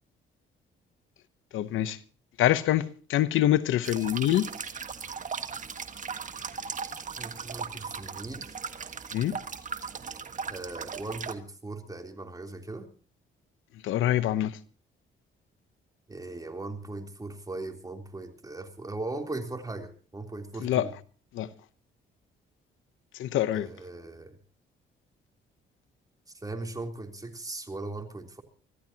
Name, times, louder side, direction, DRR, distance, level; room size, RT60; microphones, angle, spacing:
voice 1, 1.5-2.0 2.4-4.5 9.1-9.4 13.8-14.5 20.6-20.9 21.3-21.5 23.2-23.7, left 12 dB, 85° left, 0.9 m, -25 dB
sound 1, 3.8-11.3, right 6 dB, 40° right, 1.6 m, -38 dB
voice 2, 7.2-8.6 10.5-12.9 16.1-20.9 23.5-24.4 26.3-28.4, right 2 dB, 20° right, 3.4 m, -38 dB
25.0 x 15.0 x 2.9 m
cardioid pair, 90°, 20 cm